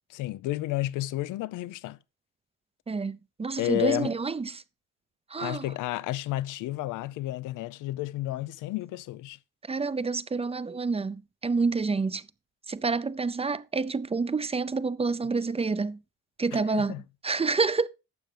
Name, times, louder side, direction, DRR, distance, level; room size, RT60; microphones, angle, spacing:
voice 1, 0.1-2.0 3.6-4.1 5.4-9.4 16.5-17.0, left 16 dB, 90° left, 0.6 m, -31 dB
voice 2, 2.9-4.6 5.3-5.6 9.7-12.2 12.7-16.0 16.4-16.9 17.2-17.9, right 4 dB, 20° right, 0.5 m, -28 dB
12.0 x 7.5 x 3.3 m
cardioid pair, 90°, 30 cm